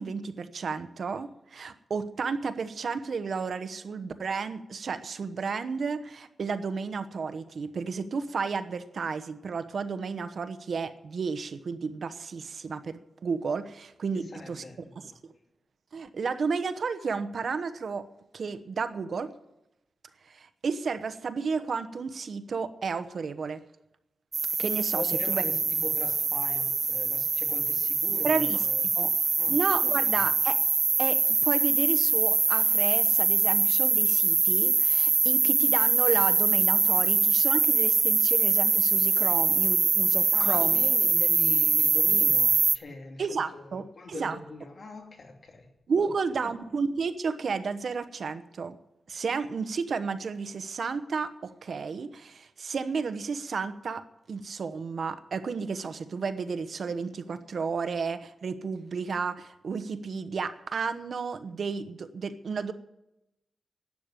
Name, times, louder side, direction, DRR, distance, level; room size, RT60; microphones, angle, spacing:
voice 1, 0.0-14.6 15.0-15.1 15.9-18.1 18.3-19.3 20.3-23.6 24.6-25.4 28.2-28.6 29.0-29.1 29.5-30.6 31.0-40.8 43.2-44.4 45.9-48.8 49.1-54.0 54.3-62.7, right 5 dB, 65° right, 11 dB, 1.0 m, -32 dB
voice 2, 14.1-15.2 24.9-28.9 29.4-29.6 29.9-30.4 40.2-46.5, left 3 dB, 50° left, 3 dB, 2.8 m, -41 dB
sound 1, 24.3-42.8, right 4 dB, 50° right, 0.5 m, -24 dB
12.0 x 9.1 x 9.6 m, 0.88 s
wide cardioid pair, 110°, 0 cm